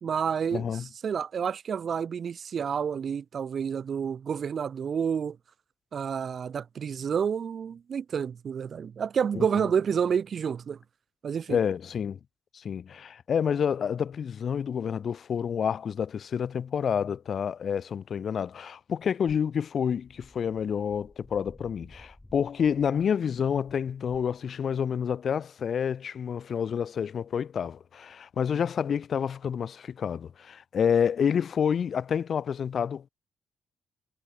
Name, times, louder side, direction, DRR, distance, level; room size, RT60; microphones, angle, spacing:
voice 1, 0.0-0.7 1.0-5.4 5.9-10.8 11.2-11.6, right 7 dB, 50° right, 0.3 m, -29 dB
voice 2, 0.5-0.9 9.3-9.6 11.5-12.2 12.5-33.1, left 7 dB, 55° left, 0.4 m, -28 dB
sound 1, 19.5-24.8, left 1 dB, 10° left, 6.6 m, -54 dB
cardioid pair, 90°, 0 cm